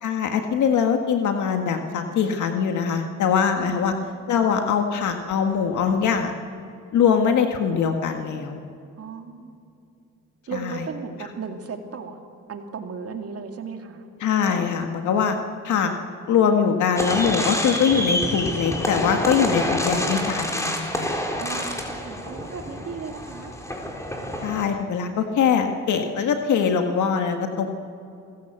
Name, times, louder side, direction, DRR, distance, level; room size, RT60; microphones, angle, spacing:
voice 1, 0.0-3.9 4.3-6.4 6.9-8.6 10.5-10.7 14.2-15.4 15.6-15.9 16.3-21.1 24.4-27.7, left 7 dB, 75° left, 5 dB, 1.7 m, -22 dB
voice 2, 3.6-3.9 9.0-9.6 10.5-12.2 12.5-14.1 15.3-15.6 21.4-23.5, right 5 dB, 50° right, 5 dB, 2.5 m, -36 dB
sound 1, 17.0-24.6, equal, 10° left, 3.9 m, -27 dB
27.5 x 16.0 x 8.0 m, 2.5 s
cardioid pair, 90°, 30 cm